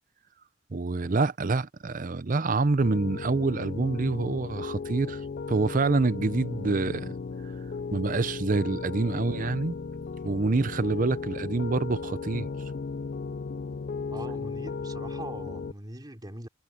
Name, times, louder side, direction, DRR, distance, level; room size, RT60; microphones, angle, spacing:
voice 1, 0.7-5.2 5.5-7.1 7.9-9.8 10.2-12.5, right 3 dB, 45° right, 0.7 m, -26 dB
Piano, 2.8-15.7, left 4 dB, 50° left, 0.4 m, -36 dB
voice 2, 14.1-16.5, right 1 dB, 20° right, 3.0 m, -41 dB
head